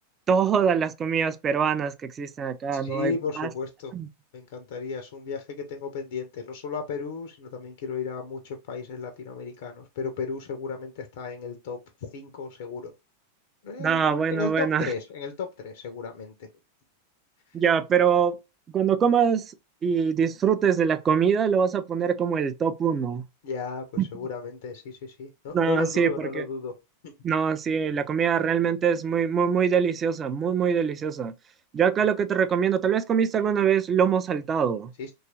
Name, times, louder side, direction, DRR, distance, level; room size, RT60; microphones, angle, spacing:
voice 1, 0.3-3.5 3.9-4.1 13.8-14.9 17.5-18.4 18.7-19.5 19.8-23.2 24.0-24.1 25.5-26.4 27.2-31.3 31.7-34.9, right 7 dB, 25° right, 0.3 m, -23 dB
voice 2, 2.7-3.9 4.3-11.8 12.1-12.9 13.6-16.5 23.4-23.8 24.1-26.7 27.0-27.1 35.0-35.1, left 5 dB, 55° left, 0.5 m, -34 dB
2.9 x 2.3 x 2.7 m
figure-of-eight pair, 90°, 0 cm